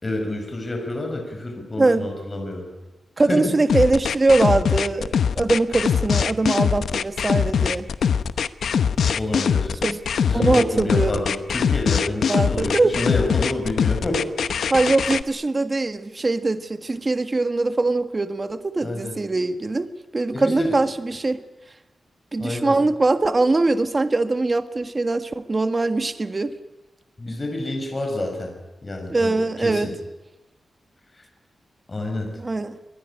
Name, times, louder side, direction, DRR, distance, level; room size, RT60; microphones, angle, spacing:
voice 1, 0.0-2.7 3.3-3.6 9.1-9.8 10.2-14.3 18.8-19.2 20.3-20.8 22.4-22.8 27.2-28.5 28.8-29.9 31.1-31.2 31.9-32.3, left 1 dB, 25° left, 3 dB, 5.6 m, -28 dB
voice 2, 3.2-7.9 9.8-10.0 10.3-11.1 12.3-12.9 14.7-21.4 22.3-26.5 29.1-29.9 32.4-32.8, right 2 dB, 25° right, 10 dB, 1.5 m, -22 dB
sound 1, 3.7-15.2, left 7 dB, 85° left, 0.9 m, -22 dB
24.0 x 21.0 x 10.0 m, 1.1 s
wide cardioid pair, 140°, 0 cm